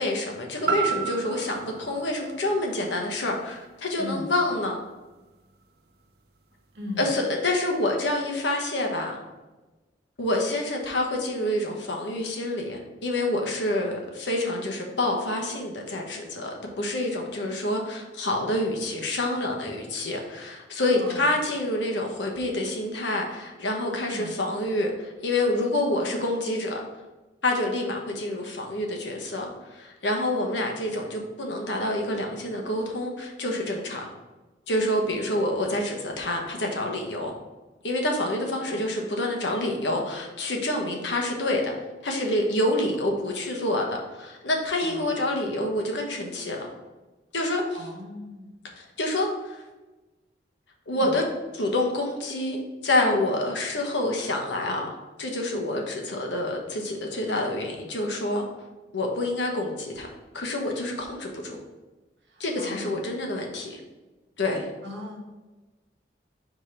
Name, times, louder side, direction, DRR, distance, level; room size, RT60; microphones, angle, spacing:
voice 1, 0.0-4.8 7.0-9.2 10.2-26.8 27.4-34.1 34.7-37.3 37.8-41.7 42.0-46.7 47.3-47.8 48.8-49.6 50.9-51.2 51.5-52.6 52.8-54.9 55.2-58.4 58.9-60.1 60.3-61.6 62.4-63.8 64.4-64.7, left 1 dB, 80° left, 1 dB, 1.1 m, -27 dB
sound 1, 0.7-4.7 5.2-5.3, right 5 dB, 60° right, 0.5 m, -33 dB
voice 2, 4.0-4.3 6.7-7.1 20.9-21.3 24.0-24.3 38.7-38.9 40.8-41.0 42.9-43.0 44.8-45.2 47.7-48.5 50.9-51.1 62.2-63.0 64.8-65.2, left 1 dB, 75° right, 1 dB, 1.2 m, -38 dB
4.9 x 3.6 x 5.5 m, 1.2 s
head